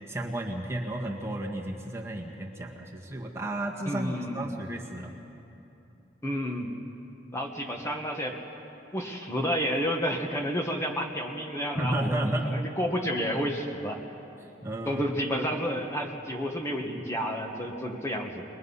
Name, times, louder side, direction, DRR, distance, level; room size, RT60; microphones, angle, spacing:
voice 1, 0.1-5.1 11.7-12.7 14.6-15.0, right 1 dB, 15° right, -1 dB, 1.6 m, -32 dB
voice 2, 3.8-4.5 6.2-6.7 7.3-8.4 8.9-14.0 14.8-18.4, equal, 15° left, 1 dB, 1.5 m, -30 dB
22.0 x 21.5 x 5.6 m, 2.9 s
head